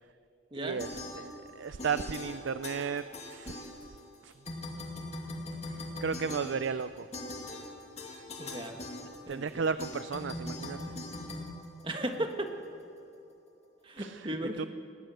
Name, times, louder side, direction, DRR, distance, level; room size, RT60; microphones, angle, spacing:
voice 1, 0.5-0.9 1.2-1.3 1.6-4.0 4.2-4.3 5.7-7.1 9.3-10.9 14.0-14.3 14.6-14.7, right 5 dB, 80° right, 13 dB, 0.5 m, -34 dB
sound 1, 0.8-1.5 1.8-4.2 4.4-12.3, left 2 dB, 35° left, 2.3 m, -41 dB
voice 2, 8.4-8.7 9.3-9.6 11.8-12.5 13.8-14.7, right 1 dB, 25° right, 4 dB, 1.6 m, -35 dB
20.0 x 18.5 x 7.8 m, 2.6 s
head